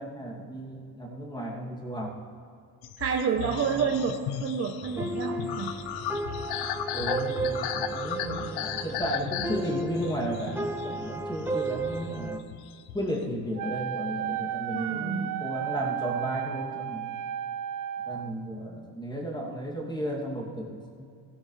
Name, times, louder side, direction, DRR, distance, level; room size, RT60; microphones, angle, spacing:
voice 1, 0.0-2.2 3.4-3.8 6.9-12.4 12.9-17.1 18.1-21.1, equal, 10° left, -2 dB, 2.7 m, -34 dB
sound 1, 2.8-13.2, left 10 dB, 85° left, 0.7 m, -36 dB
voice 2, 3.0-5.7 14.7-15.4, right 6 dB, 40° right, 3 dB, 1.0 m, -29 dB
sound 2, 4.8-12.4, right 2 dB, 5° right, 0.8 m, -34 dB
Wind instrument woodwind instrument, 13.5-18.3, right 11 dB, 55° right, 0.6 m, -33 dB
15.5 x 12.5 x 3.4 m, 2.4 s
cardioid pair, 95°, 38 cm